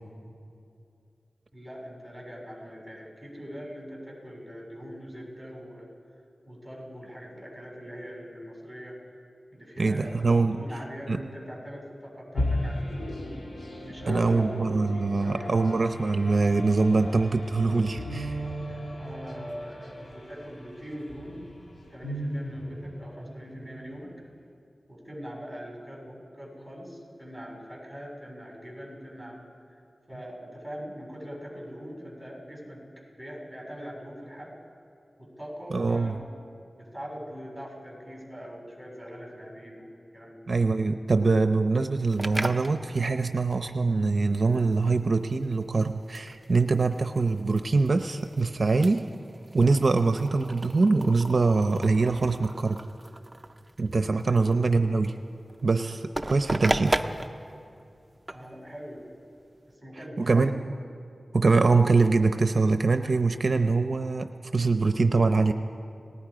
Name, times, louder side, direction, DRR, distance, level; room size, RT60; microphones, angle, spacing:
voice 1, 1.5-5.9 6.5-9.0 9.5-13.1 13.8-15.5 18.7-21.5 21.9-24.1 24.9-29.4 29.7-29.8 30.1-32.9 33.1-34.6 35.2-36.2 36.7-40.4 54.3-54.5 58.3-59.1 59.7-60.5, equal, 5° left, -3 dB, 6.9 m, -42 dB
voice 2, 9.8-10.6 11.1-11.2 14.1-18.4 35.7-36.1 40.5-49.1 49.5-52.8 53.8-55.1 55.6-57.0 60.2-60.5 61.3-65.5, right 3 dB, 60° right, 8 dB, 0.7 m, -23 dB
sound 1, 12.3-24.0, left 1 dB, 60° left, 2.7 m, -36 dB
sound 2, 42.1-59.7, right 1 dB, 20° right, 0.7 m, -37 dB
30.0 x 18.5 x 5.1 m, 2.5 s
wide cardioid pair, 75°, 0 cm